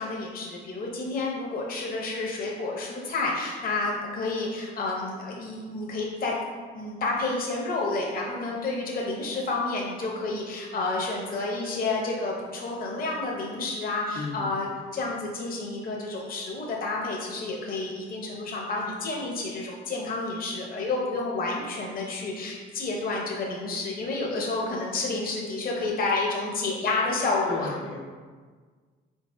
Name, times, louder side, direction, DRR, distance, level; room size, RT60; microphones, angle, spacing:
voice 1, 0.0-6.3 6.7-27.7, left 3 dB, 45° left, -2 dB, 0.7 m, -30 dB
voice 2, 14.1-14.5 27.4-28.0, left 3 dB, 80° left, 0 dB, 0.7 m, -34 dB
4.1 x 3.9 x 2.5 m, 1.5 s
cardioid pair, 90°, 20 cm